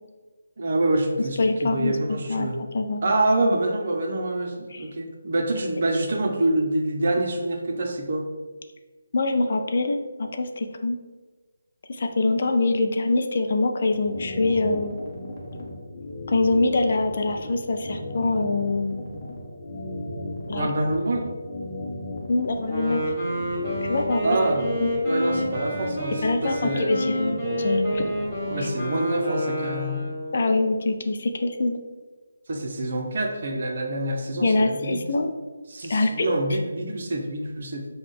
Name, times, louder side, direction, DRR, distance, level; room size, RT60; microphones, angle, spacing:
voice 1, 0.6-2.6 3.0-8.3 20.5-21.3 24.2-24.7 25.0-27.0 28.5-30.0 32.5-35.0 35.7-37.9, right 2 dB, 50° right, 2 dB, 0.7 m, -26 dB
voice 2, 1.2-2.5 2.7-3.1 4.7-4.9 9.1-11.0 11.9-14.9 16.3-19.0 20.5-20.7 22.3-23.0 23.8-24.2 24.8-24.9 26.2-28.1 28.6-28.7 30.3-31.8 34.4-35.3 35.9-36.6, left 2 dB, 50° left, 5 dB, 0.4 m, -24 dB
sound 1, 13.8-28.6, left 1 dB, 30° left, 0.8 m, -36 dB
Wind instrument woodwind instrument, 22.6-30.6, equal, 5° left, 1.4 m, -28 dB
5.0 x 2.3 x 3.6 m, 1.3 s
figure-of-eight pair, 160°, 0 cm